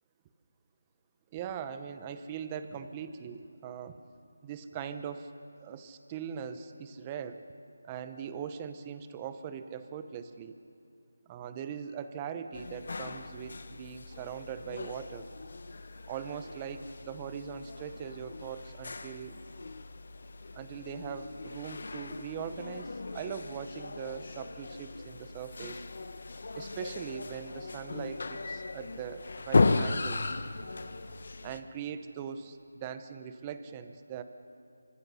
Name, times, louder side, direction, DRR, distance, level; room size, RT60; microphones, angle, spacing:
voice 1, 1.3-3.9 4.4-5.3 5.6-7.4 7.8-10.6 11.3-15.3 16.1-19.4 20.5-25.8 26.5-30.2 31.4-34.2, right 8 dB, 15° right, 10 dB, 0.9 m, -41 dB
sound 1, 12.5-31.6, left 3 dB, 55° left, 1.3 m, -36 dB
29.5 x 25.0 x 5.6 m, 2.7 s
figure-of-eight pair, 170°, 0 cm